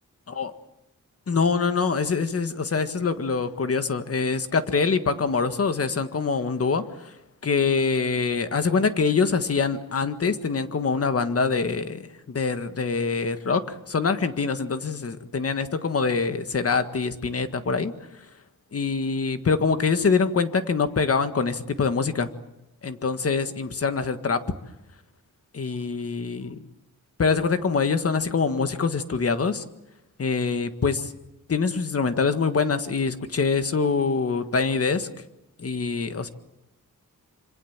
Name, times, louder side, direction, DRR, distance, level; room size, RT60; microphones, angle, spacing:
voice 1, 1.3-7.1 7.4-17.9 18.7-22.3 22.8-24.4 25.5-26.6 27.2-29.6 30.2-31.1 31.5-35.1 35.6-36.3, left 5 dB, 45° left, 10 dB, 1.7 m, -24 dB
26.5 x 26.0 x 7.4 m, 0.88 s
wide cardioid pair, 165°, 33 cm